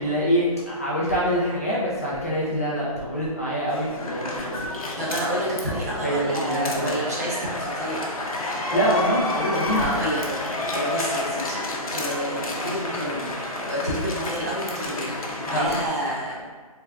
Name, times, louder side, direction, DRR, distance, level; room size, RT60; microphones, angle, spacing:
voice 1, 0.0-5.2 6.0-7.1 8.7-9.8 15.5-15.7, equal, 25° left, -7 dB, 0.4 m, -25 dB
sound 1, 3.7-15.9, left 1 dB, 70° left, 0.7 m, -30 dB
voice 2, 5.0-8.1 9.8-11.6 11.9-16.5, equal, 25° right, -6 dB, 0.6 m, -29 dB
3.4 x 3.3 x 2.2 m, 1.5 s
hypercardioid pair, 175°, 19 cm